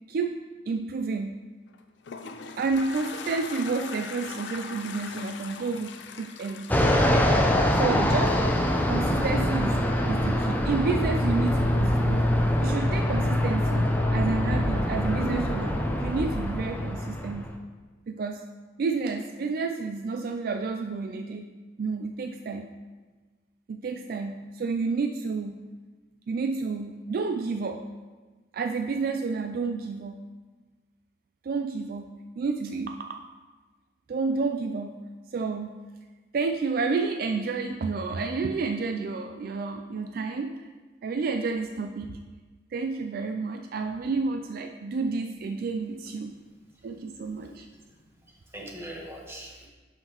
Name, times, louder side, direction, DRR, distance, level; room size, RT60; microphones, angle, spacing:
voice 1, 0.7-1.4 2.6-6.7 7.7-8.6 8.9-12.3 12.6-17.5 18.1-18.4 18.8-21.5 21.8-22.7 23.7-25.6 26.3-27.9 28.5-30.2 31.4-33.2 34.1-35.0 35.3-35.8 36.3-40.6 41.0-42.2 42.7-46.3 46.8-47.7, right 4 dB, 55° right, 5 dB, 0.3 m, -30 dB
Toilet flush, 1.7-8.0, left 5 dB, 75° left, 0.5 m, -40 dB
Fixed-wing aircraft airplane, 6.7-17.5, left 1 dB, 10° left, 0.5 m, -24 dB
voice 2, 47.4-48.0 48.3-49.7, right 1 dB, 15° right, -2 dB, 1.2 m, -43 dB
10.5 x 5.8 x 3.0 m, 1.3 s
head